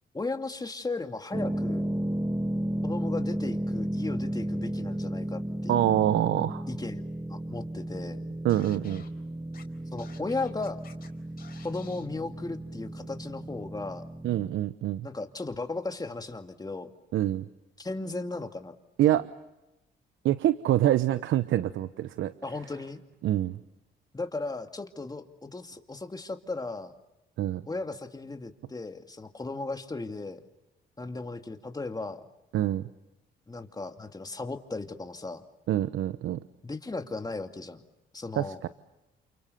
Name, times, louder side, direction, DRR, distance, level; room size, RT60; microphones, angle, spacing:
voice 1, 0.1-1.9 2.8-6.0 6.7-7.0 7.3-8.2 9.9-10.8 11.6-14.1 15.0-16.9 17.8-18.7 19.1-19.2 22.4-23.0 24.1-26.9 27.7-30.4 31.0-32.2 33.5-35.4 36.6-37.8 38.1-38.6, left 3 dB, 20° left, 6 dB, 2.5 m, -36 dB
sound 1, 1.3-14.5, right 1 dB, 10° right, 0.9 m, -34 dB
voice 2, 5.7-6.6 8.4-9.0 14.2-15.1 17.1-17.4 19.0-19.3 20.2-22.3 23.2-23.6 27.4-27.6 32.5-32.8 35.7-36.4 38.4-38.7, right 13 dB, 75° right, 14 dB, 0.9 m, -25 dB
Scratching (performance technique), 8.5-9.1 9.5-9.6 10.0-11.1 11.4-12.1, left 6 dB, 50° left, 4.2 m, -52 dB
29.5 x 28.5 x 7.0 m, 0.95 s
cardioid pair, 90°, 20 cm